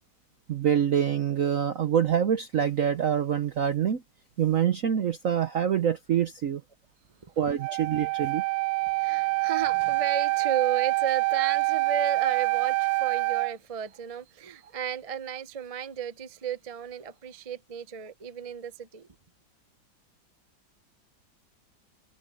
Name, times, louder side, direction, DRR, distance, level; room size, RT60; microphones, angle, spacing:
voice 1, 0.5-4.0 4.4-6.6 7.4-8.4, right 9 dB, 55° right, 1.0 m, -25 dB
Wind instrument woodwind instrument, 7.6-13.5, right 22 dB, 80° right, 1.5 m, -26 dB
voice 2, 9.0-19.1, right 8 dB, 35° right, 0.5 m, -34 dB
omnidirectional pair, 2.0 m